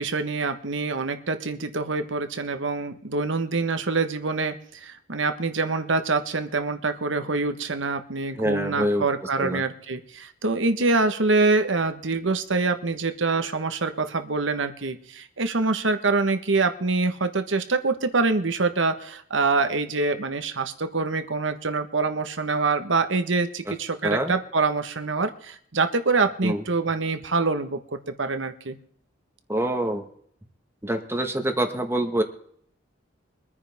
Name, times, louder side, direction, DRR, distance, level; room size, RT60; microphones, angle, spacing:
voice 1, 0.0-28.8, right 3 dB, 70° right, 8 dB, 1.3 m, -25 dB
voice 2, 8.4-9.0 9.4-9.6 23.7-23.8 24.0-24.3 26.4-26.6 29.5-30.0 30.8-32.2, right 1 dB, 15° right, 6 dB, 1.4 m, -25 dB
24.0 x 9.9 x 3.5 m, 0.64 s
head